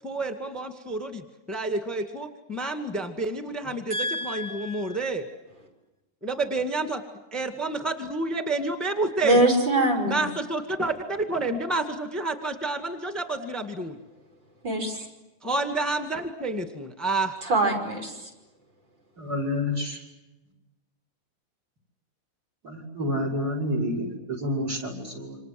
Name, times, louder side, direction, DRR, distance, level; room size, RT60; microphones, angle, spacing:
voice 1, 0.0-5.3 6.2-7.0 7.3-9.4 10.1-14.0 15.4-17.4, right 2 dB, ahead, 7 dB, 1.9 m, -29 dB
voice 2, 3.9-5.0 9.2-10.2 14.6-15.1 17.4-18.3, right 1 dB, 65° right, 2 dB, 6.4 m, -24 dB
voice 3, 19.2-20.0 22.6-25.4, left 1 dB, 50° right, 4 dB, 6.0 m, -29 dB
28.5 x 26.5 x 7.8 m, 1.0 s
omnidirectional pair, 2.2 m